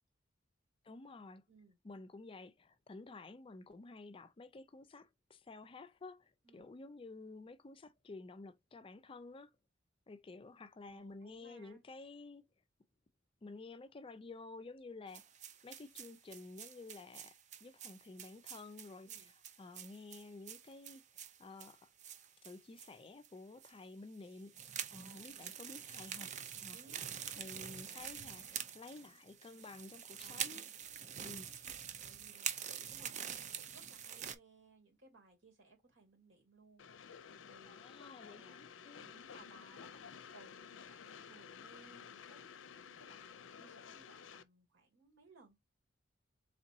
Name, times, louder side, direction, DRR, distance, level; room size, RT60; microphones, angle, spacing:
voice 1, 0.8-1.4 1.8-9.5 10.1-12.5 13.4-15.2 15.6-17.3 17.6-19.3 19.6-21.9 22.4-26.3 26.6-26.8 27.4-28.5 28.7-30.6 31.2-31.5 37.7-39.2, left 3 dB, 30° left, 0.4 m, -52 dB
voice 2, 10.8-11.8 19.1-19.3 24.9-25.3 26.5-27.0 27.3-28.1 30.2-30.6 32.0-36.9 37.4-37.9 38.2-38.6 38.9-45.6, right 3 dB, 75° right, 2.6 m, -63 dB
sound 1, 15.1-23.0 23.2-23.3 23.6-23.7 24.3-34.4, right 8 dB, 40° right, 0.5 m, -46 dB
Train, 36.8-44.4, left 7 dB, 80° left, 0.5 m, -53 dB
4.2 x 3.6 x 2.6 m
head